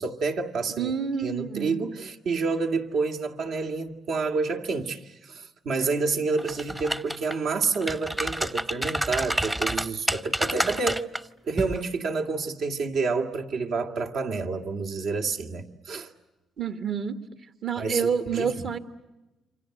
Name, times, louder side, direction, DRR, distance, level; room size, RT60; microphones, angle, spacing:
voice 1, 0.0-0.9 1.2-11.1 11.5-16.1 17.8-18.5, right 4 dB, 75° right, 2.3 m, -29 dB
voice 2, 0.8-1.8 16.6-17.2 17.6-18.8, right 6 dB, 60° right, 1.9 m, -28 dB
sound 1, 6.4-7.3 7.7-11.2 11.6-11.8, right 1 dB, 10° right, 0.8 m, -28 dB
28.0 x 25.5 x 7.9 m
cardioid pair, 90°, 0 cm